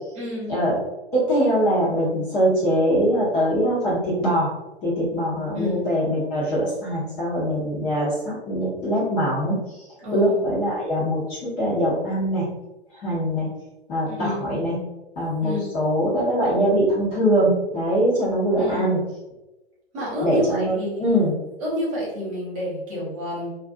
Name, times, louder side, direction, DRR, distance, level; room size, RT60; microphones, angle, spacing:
voice 1, 0.1-0.5 5.5-5.8 10.0-10.4 14.1-14.4 15.4-15.6 18.6-18.9 19.9-21.2 21.6-23.6, left 1 dB, 30° right, -6 dB, 1.1 m, -29 dB
voice 2, 1.1-4.5 4.8-9.9 10.1-12.4 13.0-13.5 13.9-14.8 15.2-19.0 20.2-21.3, equal, 25° left, -7 dB, 0.8 m, -22 dB
2.5 x 2.5 x 2.5 m, 1.0 s
figure-of-eight pair, 115°, 32 cm